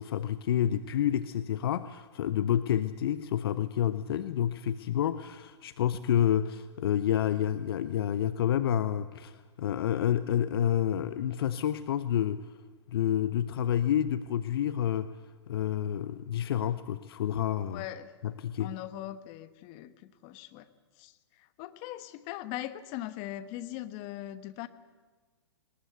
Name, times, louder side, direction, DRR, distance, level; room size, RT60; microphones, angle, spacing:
voice 1, 0.0-12.4 12.9-15.1 15.5-17.8 18.4-18.7, left 10 dB, 55° left, 13 dB, 0.8 m, -29 dB
voice 2, 17.7-18.1 18.6-20.7 20.9-24.7, left 14 dB, 35° left, 11 dB, 1.3 m, -40 dB
21.0 x 19.5 x 8.1 m, 1.4 s
figure-of-eight pair, 120°, 15 cm